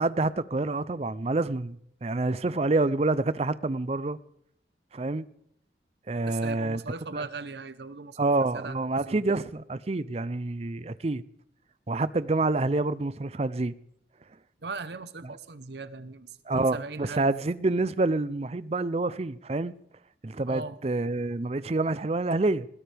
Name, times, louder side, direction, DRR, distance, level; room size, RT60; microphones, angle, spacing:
voice 1, 0.0-4.2 4.9-5.2 6.1-6.8 7.1-7.2 8.2-11.2 11.9-13.7 15.2-15.3 16.5-19.7 20.2-22.7, right 2 dB, 35° right, 0.5 m, -27 dB
voice 2, 6.3-9.2 14.6-17.3 20.5-20.8, right 3 dB, 75° right, 0.9 m, -39 dB
20.5 x 16.0 x 3.4 m
head